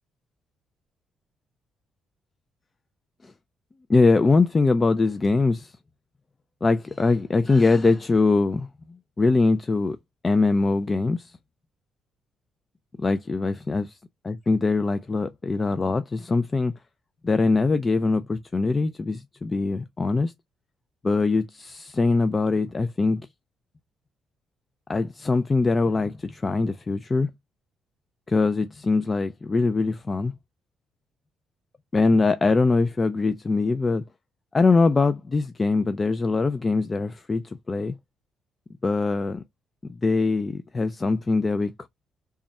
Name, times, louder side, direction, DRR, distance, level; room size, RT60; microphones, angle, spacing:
voice 1, 3.9-5.7 6.6-10.0 10.2-11.3 13.0-13.9 14.2-16.7 17.2-20.3 21.0-23.3 24.9-27.3 28.3-30.3 31.9-34.0 34.5-37.4 37.7-37.9 38.8-39.4 40.0-41.9, left 3 dB, 30° left, 0.4 m, -22 dB
3.5 x 2.1 x 4.0 m
cardioid pair, 90°, 0 cm